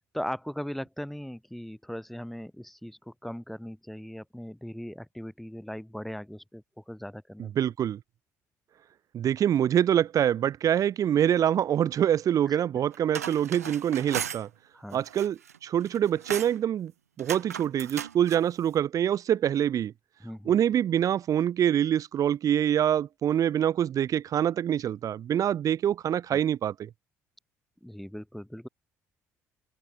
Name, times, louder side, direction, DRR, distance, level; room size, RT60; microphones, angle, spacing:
voice 1, 0.1-7.5 12.5-12.6 14.7-15.0 20.2-20.5 26.3-26.4 27.8-28.7, equal, ahead, 2.9 m, -39 dB
voice 2, 7.4-8.0 9.1-14.5 14.9-16.9 17.2-19.9 20.5-26.9, right 10 dB, 45° right, 0.9 m, -25 dB
sound 1, 12.9-14.4 14.9-15.6 15.9-16.6 17.2-18.4, right 8 dB, 80° right, 1.8 m, -36 dB
figure-of-eight pair, 50°, 8 cm